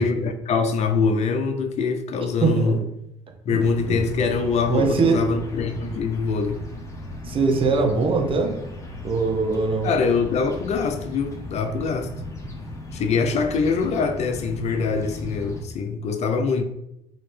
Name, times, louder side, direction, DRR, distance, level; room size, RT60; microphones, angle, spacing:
voice 1, 0.0-2.8 3.5-6.6 9.8-12.1 12.9-16.6, left 5 dB, 50° left, 0.5 m, -24 dB
voice 2, 2.4-2.7 3.5-3.6 3.9-4.2 4.7-5.2 7.2-8.6 9.0-9.9, right 4 dB, 40° right, 0.8 m, -22 dB
sound 1, 3.6-15.6, left 1 dB, 20° left, 0.9 m, -36 dB
3.1 x 2.7 x 3.2 m
supercardioid pair, 70°, 14 cm